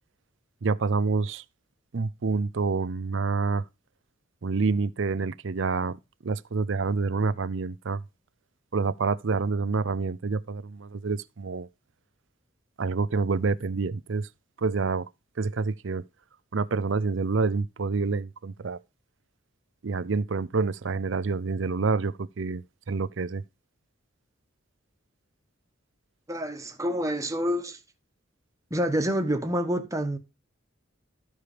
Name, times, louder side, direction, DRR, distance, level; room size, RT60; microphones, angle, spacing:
voice 1, 0.6-1.4 1.9-3.6 4.4-6.0 6.2-8.0 8.7-11.7 12.8-14.3 14.6-15.1 15.4-16.0 16.5-18.8 19.8-22.6 22.9-23.4, right 4 dB, 65° right, 0.6 m, -27 dB
voice 2, 26.3-27.8 28.7-30.2, equal, 15° right, 1.3 m, -27 dB
13.0 x 4.9 x 5.0 m
head